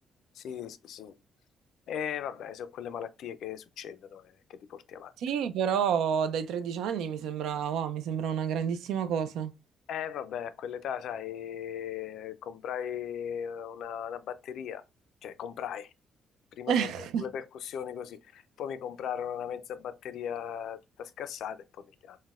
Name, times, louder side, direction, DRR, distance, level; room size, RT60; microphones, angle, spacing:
voice 1, 0.3-1.2 1.9-5.1 9.9-14.8 15.2-15.9 16.5-22.2, left 8 dB, 75° left, 0.3 m, -38 dB
voice 2, 5.2-9.5 16.7-17.2, right 8 dB, 85° right, 0.3 m, -29 dB
3.9 x 2.1 x 2.3 m
cardioid pair, 90°, 0 cm